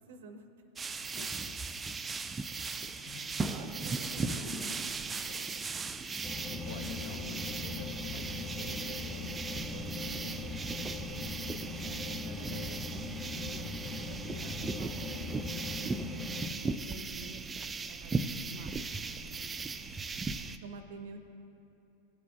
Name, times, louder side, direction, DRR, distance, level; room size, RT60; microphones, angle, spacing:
voice 1, 0.1-0.5 3.0-3.2 3.4-6.8 11.8-12.8 13.3-16.2 16.8-19.9 20.4-21.2, right 3 dB, 55° right, 9 dB, 0.6 m, -51 dB
sound 1, 0.8-20.6, right 4 dB, 15° right, 0.3 m, -38 dB
voice 2, 1.0-1.6 3.0-3.8 4.2-4.9 5.3-5.5 5.9-6.1 6.6-11.5, left 6 dB, 55° left, 6 dB, 0.8 m, -49 dB
sound 2, 6.2-16.5, left 3 dB, 5° left, 0.8 m, -40 dB
16.5 x 8.2 x 2.3 m, 2.9 s
figure-of-eight pair, 90°, 0 cm